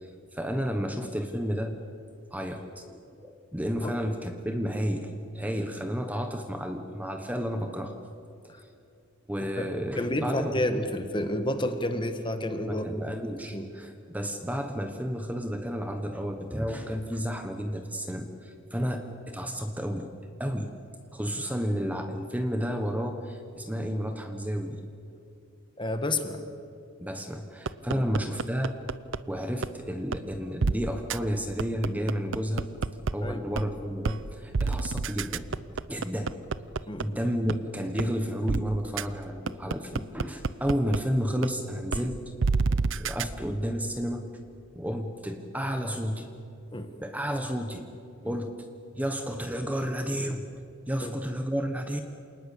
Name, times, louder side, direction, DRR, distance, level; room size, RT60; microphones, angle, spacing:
voice 1, 0.0-1.8 2.3-7.9 8.6-8.7 9.3-10.8 12.6-20.1 20.4-20.7 21.1-24.8 27.0-28.7 29.3-32.7 33.1-35.5 35.9-36.3 36.9-42.2 42.9-44.2 44.7-46.3 47.0-47.8 48.2-48.5 48.9-50.4 50.9-52.0, equal, 10° right, 5 dB, 1.2 m, -31 dB
voice 2, 10.0-12.8 13.5-13.7 18.8-18.9 25.8-26.4 27.9-28.0 33.2-33.4 36.9-37.1 46.7-46.9 51.0-51.1, left 1 dB, 25° left, 8 dB, 1.6 m, -30 dB
sound 1, 27.7-29.2 29.6-29.7 30.1-30.2 30.6-30.7 31.1-31.2 31.6-33.1 33.6-33.7 34.0-34.2 34.5-37.0 37.5-37.6 38.0-38.1 38.5-38.6 39.0-39.1 39.5-41.0 41.4-41.5 41.9-42.0 42.4-43.2, right 4 dB, 65° right, 0.6 m, -27 dB
27.5 x 19.5 x 8.5 m, 2.6 s
head